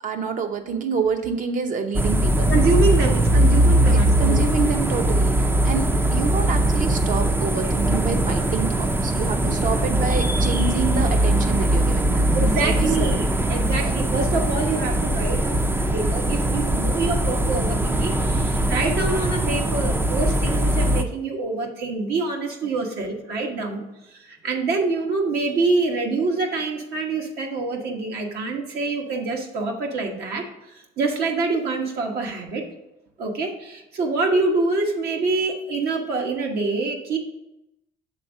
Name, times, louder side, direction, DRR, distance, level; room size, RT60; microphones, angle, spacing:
voice 1, 0.0-2.5 3.9-12.3 12.6-13.2 13.8-13.9, right 5 dB, 50° right, 7 dB, 0.8 m, -27 dB
sound 1, 1.9-21.0, right 1 dB, 10° right, 0.4 m, -21 dB
voice 2, 2.5-4.4 12.3-23.8 24.1-32.7 33.2-37.2, right 3 dB, 70° right, 2 dB, 1.2 m, -26 dB
6.9 x 3.6 x 6.0 m, 0.90 s
cardioid pair, 110°, 17 cm